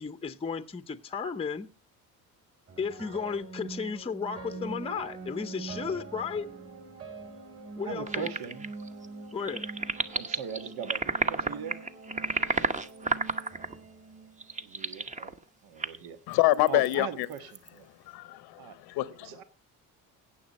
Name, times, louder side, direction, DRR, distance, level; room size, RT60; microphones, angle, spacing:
voice 1, 0.0-1.7 2.8-6.5 7.8-8.3 9.3-9.7, left 5 dB, 15° left, 0.7 m, -34 dB
sound 1, 2.7-14.9, right 3 dB, 35° right, 4.4 m, -44 dB
voice 2, 7.8-8.7 10.1-11.8 14.6-15.3 15.6-16.2 16.7-17.9 18.6-18.8 19.2-19.4, right 8 dB, 75° right, 1.6 m, -40 dB
sound 2, 8.1-9.1 9.3-13.7 14.4-15.4 15.8-16.1 16.3-16.9 17.2-17.7, right 3 dB, 20° right, 1.0 m, -31 dB
voice 3, 16.3-17.3 18.1-19.3, left 17 dB, 90° left, 0.9 m, -26 dB
16.5 x 7.3 x 4.1 m
cardioid pair, 120°, 37 cm